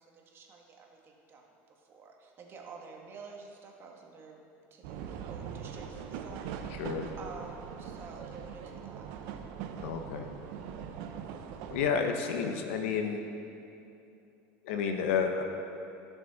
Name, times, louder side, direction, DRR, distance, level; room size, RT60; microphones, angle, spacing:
voice 1, 0.0-1.5 1.8-4.4 4.7-9.1, right 4 dB, 35° right, 0 dB, 1.5 m, -50 dB
sound 1, 4.8-11.9, right 7 dB, 70° right, 0.8 m, -41 dB
voice 2, 9.8-10.3 11.7-13.2 14.6-15.4, left 6 dB, 90° left, 4 dB, 1.0 m, -30 dB
16.0 x 6.2 x 4.1 m, 2.8 s
supercardioid pair, 125°, 7 cm